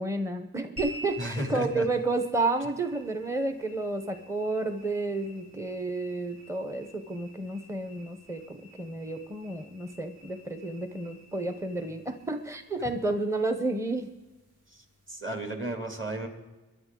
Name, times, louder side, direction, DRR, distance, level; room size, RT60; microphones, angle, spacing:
voice 1, 0.0-14.1, right 2 dB, 10° right, 8 dB, 0.8 m, -31 dB
sound 1, 0.8-15.4, equal, 85° right, 4.7 m, -50 dB
voice 2, 1.2-1.9 14.7-16.3, right 1 dB, 35° right, 3 dB, 2.5 m, -34 dB
22.5 x 11.0 x 3.8 m, 1.1 s
wide cardioid pair, 80°, 36 cm